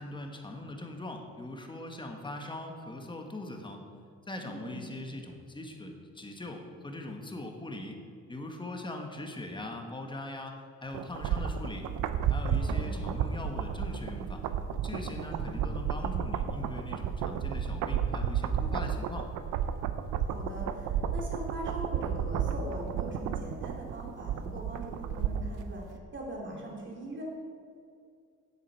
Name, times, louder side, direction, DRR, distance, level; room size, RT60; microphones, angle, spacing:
voice 1, 0.0-3.8 4.3-8.0 8.3-10.6 10.8-11.9 12.3-14.5 14.8-19.3, left 2 dB, 15° left, 3 dB, 1.4 m, -41 dB
voice 2, 4.4-4.8 12.5-13.0 15.0-15.4 20.2-25.8 26.1-27.2, right 1 dB, 40° right, -2 dB, 2.6 m, -41 dB
sound 1, 10.9-25.6 25.9-26.0, right 8 dB, 90° right, 0.6 m, -32 dB
10.0 x 7.7 x 4.6 m, 2.3 s
cardioid pair, 90°, 30 cm